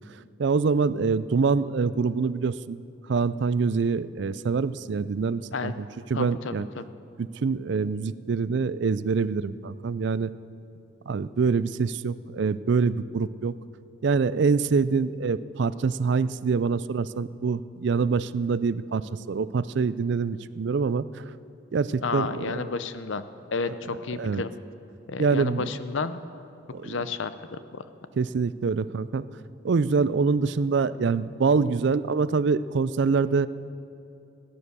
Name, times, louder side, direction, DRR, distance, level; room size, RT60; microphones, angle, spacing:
voice 1, 0.4-2.8 3.1-6.7 7.2-10.3 11.1-13.5 14.0-21.0 21.7-22.6 24.2-24.4 25.2-25.7 26.7-26.9 28.2-29.3 29.6-33.5, right 5 dB, 60° right, 16 dB, 0.4 m, -25 dB
voice 2, 6.1-6.9 22.0-23.3 23.5-24.6 25.1-26.2 26.8-27.8, left 4 dB, 70° left, 13 dB, 0.6 m, -31 dB
17.0 x 9.7 x 6.7 m, 2.7 s
head